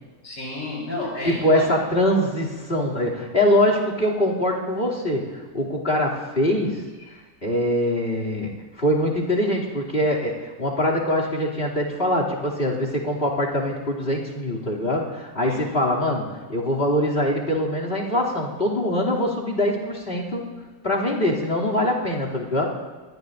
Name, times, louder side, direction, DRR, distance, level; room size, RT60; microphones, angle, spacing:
voice 1, 0.2-1.7 15.4-15.6, left 2 dB, 85° left, -2 dB, 6.2 m, -31 dB
voice 2, 1.2-6.8 7.4-20.5 20.8-22.7, left 1 dB, 35° left, 0 dB, 3.1 m, -23 dB
25.0 x 21.0 x 2.7 m, 1.3 s
omnidirectional pair, 1.8 m